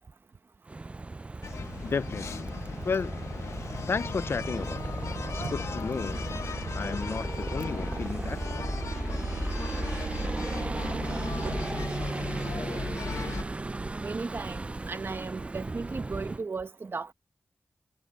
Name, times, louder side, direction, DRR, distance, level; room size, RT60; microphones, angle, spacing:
sound 1, 0.7-16.4, right 3 dB, 25° right, 0.3 m, -35 dB
sound 2, 1.4-13.4, left 5 dB, 80° left, 1.2 m, -38 dB
voice 1, 1.8-2.5 2.8-3.2 3.9-5.0 5.3-6.3 6.7-8.4, left 5 dB, 55° left, 0.4 m, -33 dB
sound 3, 4.8-8.0 10.2-12.7, right 5 dB, 90° right, 3.8 m, -48 dB
voice 2, 14.0-17.1, right 4 dB, 50° right, 0.9 m, -36 dB
wide cardioid pair, 100°, 5 cm